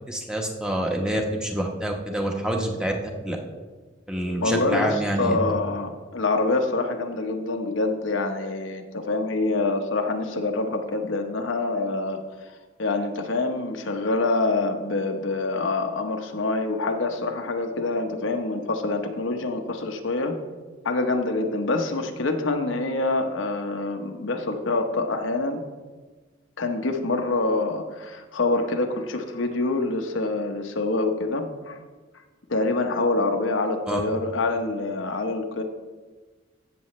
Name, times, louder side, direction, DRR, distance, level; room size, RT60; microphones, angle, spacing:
voice 1, 0.1-3.0 3.2-3.4 4.1-5.4 33.9-34.0, right 1 dB, 5° right, 1 dB, 1.0 m, -27 dB
voice 2, 4.4-12.2 12.8-20.4 20.8-25.6 26.6-31.8 32.5-35.6, left 2 dB, 80° left, 4 dB, 1.0 m, -26 dB
15.5 x 6.9 x 3.2 m, 1.3 s
head